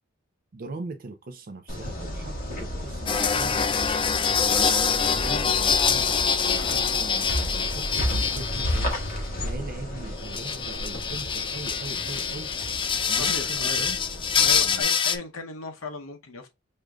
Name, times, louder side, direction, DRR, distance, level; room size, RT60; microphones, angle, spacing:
voice 1, 0.5-3.6 4.2-6.1 6.5-9.0 9.4-12.5 12.9-14.0 14.4-15.1, right 3 dB, 45° right, 0.5 m, -40 dB
sound 1, 1.7-14.8, equal, 45° left, 1.5 m, -33 dB
sound 2, 3.1-9.1 10.2-15.2, left 6 dB, 25° left, 0.3 m, -25 dB
voice 2, 13.1-13.9 14.4-16.5, left 2 dB, 70° left, 0.7 m, -36 dB
6.3 x 2.5 x 2.3 m
head